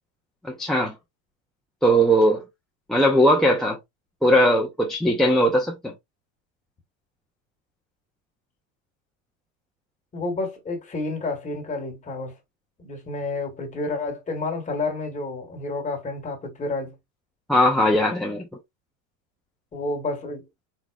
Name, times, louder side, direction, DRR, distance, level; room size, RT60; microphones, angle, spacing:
voice 1, 0.4-0.9 1.8-2.4 2.9-3.8 4.2-5.9 17.5-18.4, equal, ahead, 0.6 m, -19 dB
voice 2, 10.1-12.3 12.8-17.0 19.7-20.5, left 3 dB, 20° left, 1.7 m, -30 dB
4.8 x 3.9 x 2.4 m
supercardioid pair, 145°, 39 cm